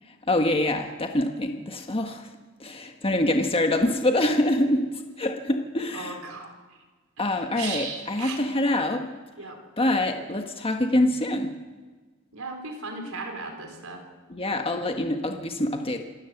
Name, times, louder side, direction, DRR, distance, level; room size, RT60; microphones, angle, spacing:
voice 1, 0.3-2.3 2.6-6.2 7.2-9.1 9.8-11.5 14.3-16.0, left 1 dB, 25° left, 4 dB, 1.4 m, -25 dB
voice 2, 5.9-6.5 7.2-8.4 9.4-9.6 12.3-14.0, right 4 dB, 80° right, 3 dB, 4.6 m, -36 dB
27.0 x 13.0 x 8.0 m, 1.3 s
head